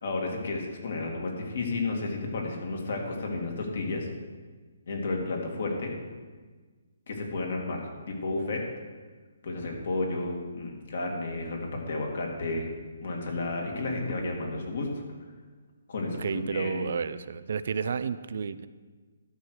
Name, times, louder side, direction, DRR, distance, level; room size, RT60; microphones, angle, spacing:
voice 1, 0.0-4.1 4.9-5.9 7.1-8.6 9.4-12.7 13.0-14.9 15.9-16.2 16.5-16.8, left 2 dB, 65° left, 0 dB, 2.2 m, -32 dB
voice 2, 16.2-18.7, right 6 dB, 60° right, 14 dB, 0.4 m, -31 dB
12.0 x 4.6 x 6.6 m, 1.4 s
hypercardioid pair, 145°, 0 cm